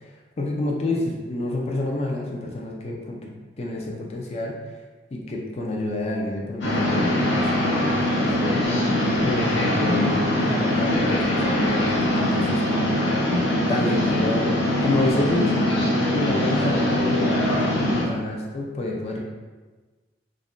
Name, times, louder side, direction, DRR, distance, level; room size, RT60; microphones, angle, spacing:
voice 1, 0.4-4.5 5.1-8.6 9.2-12.6 13.7-15.5 16.1-19.2, left 2 dB, 35° left, -1 dB, 0.4 m, -28 dB
sound 1, 6.6-18.0, left 1 dB, 85° left, 0.6 m, -22 dB
2.5 x 2.1 x 3.6 m, 1.3 s
head